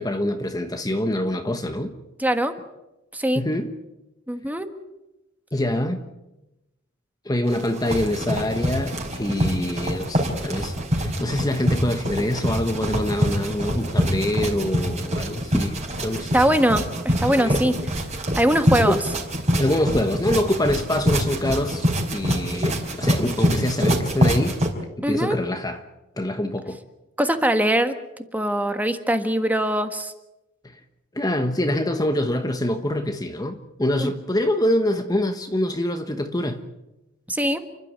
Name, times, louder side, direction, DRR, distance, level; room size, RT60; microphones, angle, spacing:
voice 1, 0.0-1.9 3.3-3.7 5.5-6.0 7.2-15.7 16.0-16.4 17.3-17.6 18.8-19.0 19.6-24.6 25.0-25.8 26.2-26.8 31.1-36.6, left 1 dB, 20° left, 1.2 m, -25 dB
voice 2, 2.2-2.5 3.1-3.4 4.3-4.7 16.3-17.7 18.4-19.0 25.0-25.4 27.2-28.0 28.3-30.1 34.0-34.1 37.3-37.6, right 1 dB, 10° right, 1.5 m, -21 dB
sound 1, 7.5-24.7, equal, 35° right, 4.9 m, -25 dB
30.0 x 12.5 x 9.5 m
head